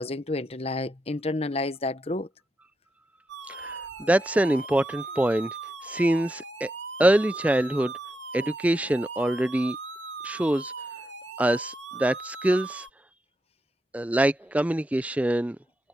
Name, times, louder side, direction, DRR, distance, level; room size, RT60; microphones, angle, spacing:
voice 1, 0.0-2.3, left 2 dB, 30° left, 0.9 m, -30 dB
sound 1, 3.3-12.9, right 5 dB, 70° right, 2.8 m, -39 dB
voice 2, 3.5-5.5 5.8-6.7 7.0-7.9 8.3-9.8 10.2-10.7 11.4-12.9 13.9-15.6, right 1 dB, 5° right, 0.3 m, -24 dB
head